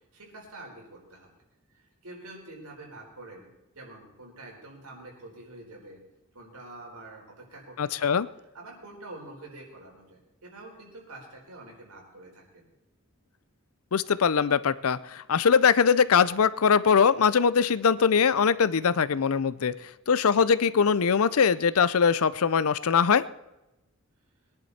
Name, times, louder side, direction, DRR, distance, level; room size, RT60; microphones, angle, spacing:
voice 1, 0.1-1.3 1.7-3.5 3.7-6.0 6.3-12.7, right 2 dB, 85° right, -1 dB, 4.5 m, -46 dB
voice 2, 7.8-8.3 13.9-19.7 20.1-23.3, left 6 dB, 70° left, 17 dB, 0.5 m, -22 dB
22.0 x 10.5 x 4.3 m, 0.95 s
head